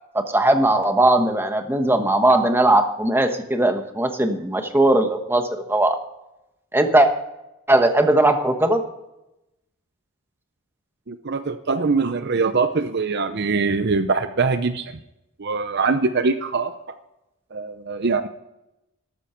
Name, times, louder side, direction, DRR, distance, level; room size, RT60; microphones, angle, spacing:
voice 1, 0.1-6.0 6.7-7.1 7.7-8.8, right 1 dB, 10° right, 6 dB, 1.2 m, -19 dB
voice 2, 11.1-15.0 15.4-16.7 17.5-18.3, right 4 dB, 50° right, 10 dB, 0.7 m, -23 dB
13.5 x 12.5 x 4.5 m, 0.90 s
head